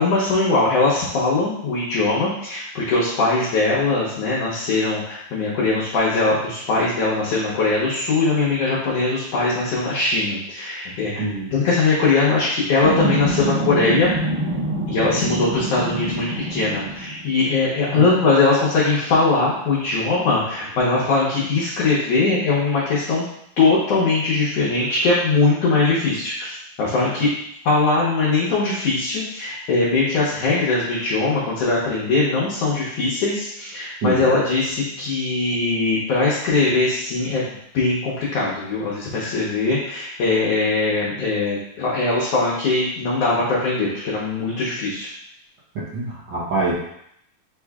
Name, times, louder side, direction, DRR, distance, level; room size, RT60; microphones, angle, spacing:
voice 1, 0.0-11.2 11.5-14.1 14.9-23.2 23.6-27.3 27.6-45.1, left 3 dB, 65° left, -7 dB, 1.8 m, -21 dB
voice 2, 11.2-11.5 17.9-18.1 34.0-34.2 45.9-46.7, right 3 dB, 75° right, -9 dB, 1.0 m, -24 dB
sound 1, 12.8-17.3 18.6-18.7 19.1-21.2, right 2 dB, 60° right, 0.6 m, -26 dB
6.2 x 3.0 x 2.3 m, 0.73 s
omnidirectional pair, 3.3 m